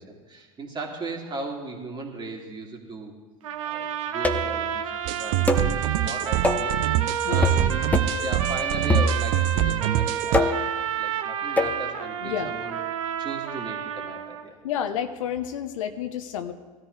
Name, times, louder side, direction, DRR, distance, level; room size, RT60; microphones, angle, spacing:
voice 1, 0.0-3.1 3.6-7.9 8.2-12.8 13.2-14.6, right 2 dB, 25° right, 0 dB, 2.8 m, -37 dB
sound 1, 3.4-14.4, right 8 dB, 75° right, 1.0 m, -30 dB
sound 2, 4.2-4.6 5.5-5.7 6.4-6.7 7.4-7.7 7.9-8.2 8.9-9.5 10.3-10.7 11.6-11.8, left 1 dB, 10° left, 1.0 m, -23 dB
sound 3, 5.1-10.4, right 14 dB, 55° right, 0.6 m, -25 dB
voice 2, 12.2-12.5 14.6-16.5, left 9 dB, 70° left, 9 dB, 0.9 m, -30 dB
18.0 x 13.5 x 3.3 m, 1.3 s
hypercardioid pair, 85°, 17 cm